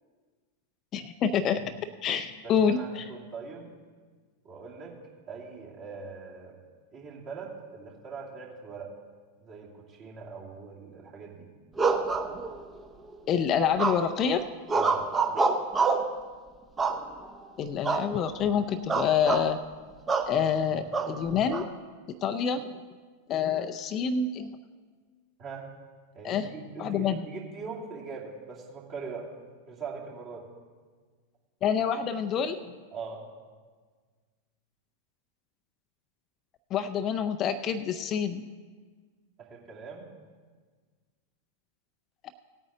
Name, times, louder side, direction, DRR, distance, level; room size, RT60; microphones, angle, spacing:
voice 1, 0.9-1.7 2.0-3.1 13.3-14.5 17.6-19.6 20.3-21.7 22.2-22.7 23.3-24.6 26.2-26.5 26.8-27.3 31.6-32.7 36.7-38.4, left 7 dB, 30° left, 9 dB, 0.5 m, -27 dB
voice 2, 2.4-3.7 4.4-5.0 5.3-6.5 6.9-8.9 9.4-11.5 14.7-15.0 25.4-25.7 26.1-29.3 29.7-30.4 32.9-33.3 39.4-40.1, right 5 dB, 35° right, -4 dB, 2.6 m, -41 dB
sound 1, 11.8-12.8 13.8-14.3 14.7-16.1 16.8-17.4 17.8-18.1 18.4-18.6 18.9-19.5 20.1-20.3 20.9-21.6, right 4 dB, 15° right, 0.9 m, -26 dB
17.5 x 8.9 x 3.8 m, 1.5 s
figure-of-eight pair, 90°, 0 cm